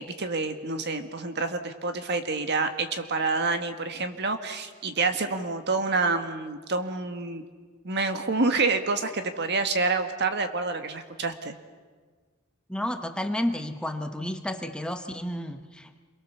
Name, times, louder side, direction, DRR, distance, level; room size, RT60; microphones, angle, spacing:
voice 1, 0.0-7.4 7.8-11.5, right 3 dB, 55° right, 8 dB, 1.7 m, -28 dB
voice 2, 12.7-16.0, left 1 dB, 5° left, 7 dB, 1.0 m, -31 dB
28.5 x 22.5 x 7.2 m, 1.5 s
head